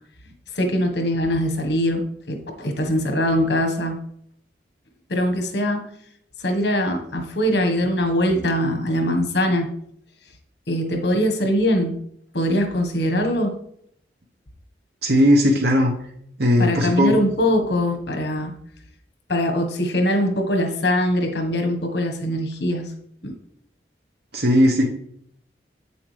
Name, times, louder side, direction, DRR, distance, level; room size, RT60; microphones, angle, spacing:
voice 1, 0.5-4.0 5.1-5.8 6.4-9.7 10.7-12.0 12.3-13.5 16.6-18.5 19.3-22.9 23.2-23.3, equal, 75° left, 5 dB, 1.4 m, -22 dB
voice 2, 15.0-15.9 16.4-17.2 24.3-24.8, equal, 65° right, 0 dB, 1.1 m, -17 dB
8.7 x 7.1 x 3.4 m, 0.69 s
head